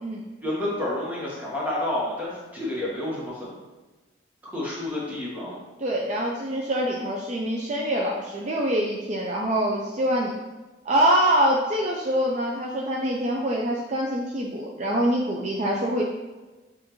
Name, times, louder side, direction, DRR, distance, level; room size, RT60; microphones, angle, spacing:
voice 1, 0.4-3.6 4.4-5.6, left 1 dB, 10° right, -6 dB, 1.2 m, -29 dB
voice 2, 5.8-10.3 10.9-16.0, right 1 dB, 35° right, -2 dB, 0.4 m, -25 dB
7.1 x 2.5 x 3.0 m, 1.2 s
head